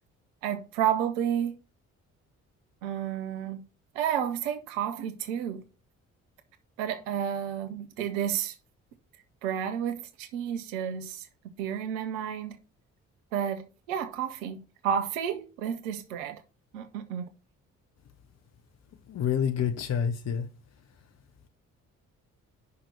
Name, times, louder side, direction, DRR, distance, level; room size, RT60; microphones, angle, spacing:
voice 1, 0.4-1.6 2.8-3.6 3.9-5.6 6.8-8.5 9.4-11.3 11.6-12.6 13.3-16.4 16.7-17.3, right 9 dB, 65° right, 0.9 m, -31 dB
voice 2, 19.1-20.5, left 8 dB, 40° left, 1.0 m, -28 dB
5.8 x 5.3 x 6.6 m
figure-of-eight pair, 40°, 40 cm